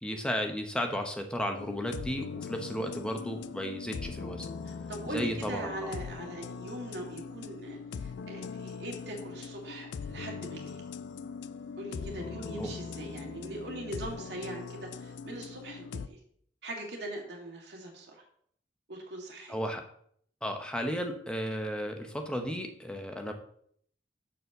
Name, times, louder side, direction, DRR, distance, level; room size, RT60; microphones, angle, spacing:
voice 1, 0.0-4.5 5.1-5.9 12.6-12.7 19.5-19.8 20.4-23.3, equal, 5° left, 4 dB, 0.8 m, -34 dB
sound 1, 1.6-16.1, left 5 dB, 80° left, 0.4 m, -41 dB
voice 2, 4.6-10.8 11.8-16.2 16.6-18.2 18.9-19.6, right 1 dB, 70° right, 0 dB, 2.1 m, -41 dB
6.8 x 4.3 x 6.6 m, 0.64 s
head